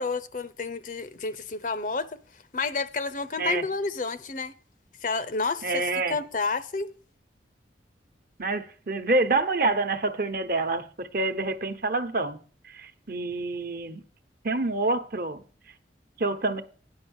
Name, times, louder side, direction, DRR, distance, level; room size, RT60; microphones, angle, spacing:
voice 1, 0.0-4.5 5.0-6.9, left 4 dB, 45° left, 0.6 m, -30 dB
voice 2, 5.6-6.2 8.4-12.4 12.7-14.0 14.4-15.4 16.2-16.6, right 3 dB, 50° right, 1.0 m, -27 dB
9.7 x 5.6 x 7.1 m
head